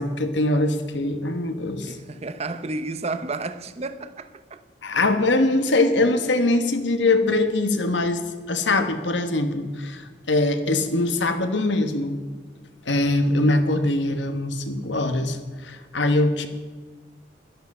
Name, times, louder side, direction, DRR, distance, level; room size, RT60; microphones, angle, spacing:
voice 1, 0.0-2.0 4.8-8.2 8.5-12.2 12.8-16.5, left 2 dB, 80° left, 1.3 m, -22 dB
voice 2, 1.8-4.6, right 3 dB, 35° right, 0.7 m, -32 dB
12.0 x 11.5 x 5.5 m
head